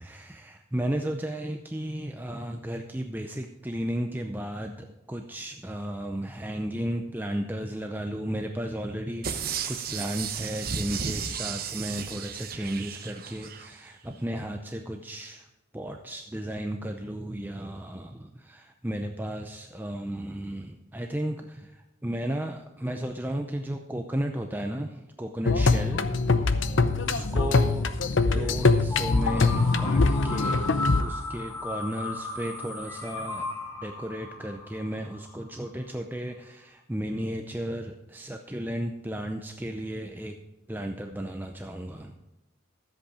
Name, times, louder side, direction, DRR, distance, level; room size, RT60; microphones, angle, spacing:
voice 1, 0.0-15.5 15.7-26.0 27.0-27.9 28.3-30.6 31.0-33.5 33.8-40.4 40.7-42.1, right 1 dB, 10° right, 4 dB, 0.5 m, -34 dB
sound 1, 9.2-13.7 14.1-14.2, right 6 dB, 45° right, 0.9 m, -34 dB
sound 2, 25.5-31.0, left 3 dB, 65° left, 0.7 m, -23 dB
sound 3, 28.9-35.7, left 3 dB, 10° left, 1.4 m, -35 dB
13.0 x 7.9 x 4.9 m, 0.98 s
head